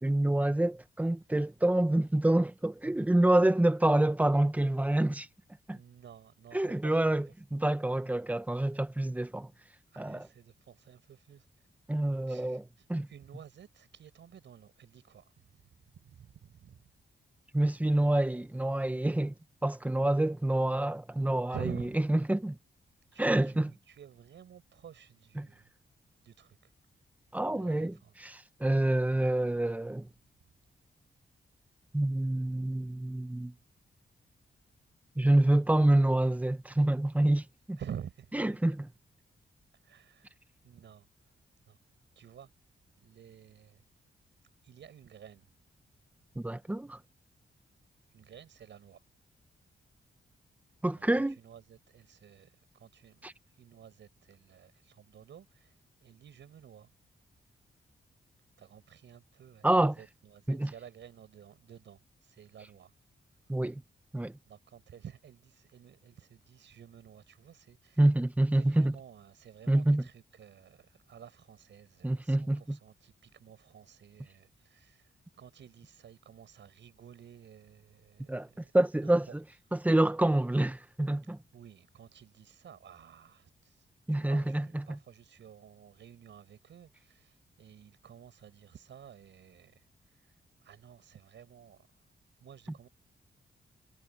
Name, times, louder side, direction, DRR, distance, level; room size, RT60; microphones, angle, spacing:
voice 1, 0.0-5.3 5.7-5.8 6.5-7.3 7.5-9.5 10.0-10.3 11.9-12.6 12.9-13.1 17.5-19.3 19.6-21.5 22.1-22.6 23.2-23.7 25.4-25.5 27.3-27.9 28.2-28.3 28.6-30.1 31.9-33.5 35.2-37.8 38.4-38.9 46.4-47.0 50.8-51.4 53.2-53.3 59.6-59.9 60.5-60.7 63.5-63.8 64.1-64.4 68.0-68.9 69.7-70.0 72.0-72.8 78.3-78.5 78.7-79.3 79.8-81.4 84.1-85.0, right 1 dB, 10° right, 1.0 m, -27 dB
voice 2, 5.7-7.3 9.9-11.5 12.3-16.9 21.5-22.0 23.1-25.7 26.2-26.7 27.5-28.1 37.8-38.4 39.8-40.4 40.6-41.1 41.7-41.8 42.1-42.5 43.0-43.8 44.6-45.5 48.1-49.0 50.9-51.0 51.4-56.9 58.6-62.9 64.5-68.0 68.5-79.4 81.2-91.9 92.4-92.9, right 8 dB, 90° right, 6.8 m, -51 dB
wide cardioid pair, 150°, 18 cm